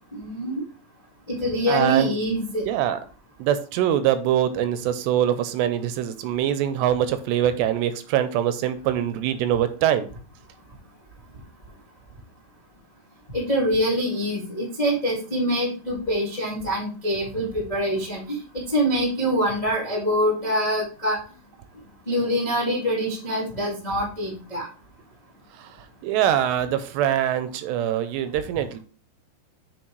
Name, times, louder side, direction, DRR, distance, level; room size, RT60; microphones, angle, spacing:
voice 1, 0.1-0.6 1.3-2.6 13.3-18.4 18.7-21.2 22.1-24.7, equal, 65° left, -4 dB, 0.4 m, -25 dB
voice 2, 1.7-2.2 2.7-3.0 3.4-10.1 25.6-25.7 26.0-28.8, right 10 dB, 80° right, 11 dB, 2.7 m, -23 dB
7.9 x 6.0 x 3.2 m, 0.38 s
omnidirectional pair, 5.1 m